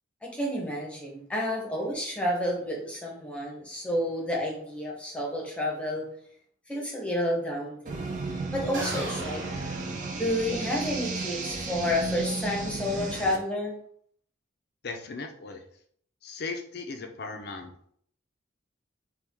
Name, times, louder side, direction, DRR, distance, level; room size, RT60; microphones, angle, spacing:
voice 1, 0.2-6.1 6.7-8.1 8.5-9.7 10.2-13.7, left 1 dB, 5° left, -2 dB, 0.8 m, -30 dB
sound 1, 7.9-13.4, right 3 dB, 40° right, 0.5 m, -34 dB
sound 2, 8.7-10.7, right 2 dB, 70° right, 1.1 m, -38 dB
voice 2, 14.8-15.6 16.2-17.7, left 4 dB, 50° left, 5 dB, 0.5 m, -37 dB
4.6 x 2.3 x 3.5 m, 0.63 s
head